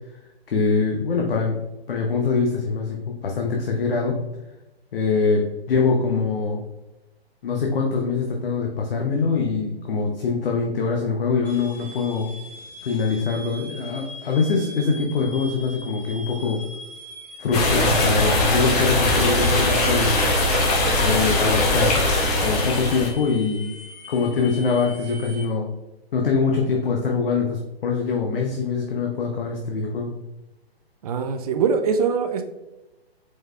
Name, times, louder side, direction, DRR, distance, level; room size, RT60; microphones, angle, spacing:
voice 1, 0.5-1.6 1.9-4.2 4.9-6.6 7.4-12.3 12.8-16.6 17.4-20.2 21.0-22.0 22.4-23.7 24.1-25.7 26.1-30.1, left 4 dB, 60° left, 0 dB, 0.8 m, -23 dB
sound 1, 11.4-25.4, left 2 dB, 5° left, 1.3 m, -41 dB
sound 2, 17.5-23.1, left 1 dB, 35° left, 1.1 m, -20 dB
voice 2, 31.0-32.4, right 6 dB, 35° right, 7 dB, 0.5 m, -22 dB
4.8 x 4.0 x 2.4 m, 1.0 s
figure-of-eight pair, 130°, 32 cm